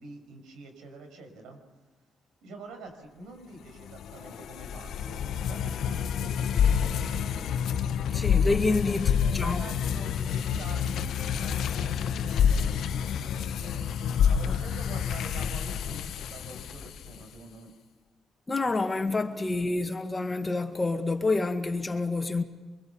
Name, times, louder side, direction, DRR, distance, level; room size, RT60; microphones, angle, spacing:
voice 1, 0.0-1.6 2.4-7.5 8.9-13.9 14.3-17.7, right 2 dB, 80° right, 6.0 m, -46 dB
sound 1, 3.8-17.2, left 8 dB, 70° left, 1.1 m, -28 dB
voice 2, 8.1-9.6 18.5-22.4, left 3 dB, 25° left, 2.0 m, -28 dB
24.5 x 23.5 x 7.2 m
cardioid pair, 90°, 0 cm